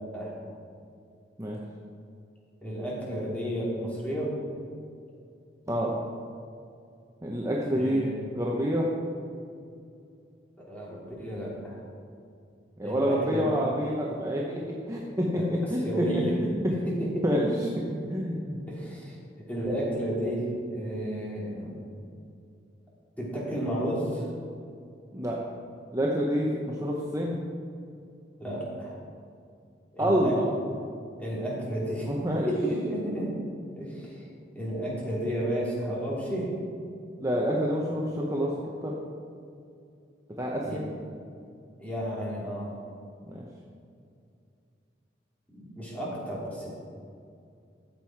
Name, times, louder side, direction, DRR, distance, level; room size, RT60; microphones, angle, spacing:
voice 1, 2.6-4.3 7.7-8.2 10.7-11.8 12.8-13.4 15.3-15.5 15.8-16.4 16.9-17.6 18.7-19.1 19.5-21.7 23.2-24.3 28.4-29.0 29.9-30.4 31.2-32.1 32.5-33.3 33.8-34.2 34.5-36.5 40.5-40.9 41.8-42.7 45.5-46.7, right 1 dB, 10° left, -6 dB, 2.9 m, -32 dB
voice 2, 7.2-8.1 8.3-8.9 12.8-16.1 16.4-16.7 17.2-17.5 17.9-18.6 25.1-25.4 25.9-27.3 30.0-30.5 32.1-32.5 37.2-38.5 38.8-38.9 40.4-40.8 43.3-43.4, equal, 15° right, -3 dB, 0.9 m, -27 dB
13.0 x 7.6 x 4.7 m, 2.4 s
head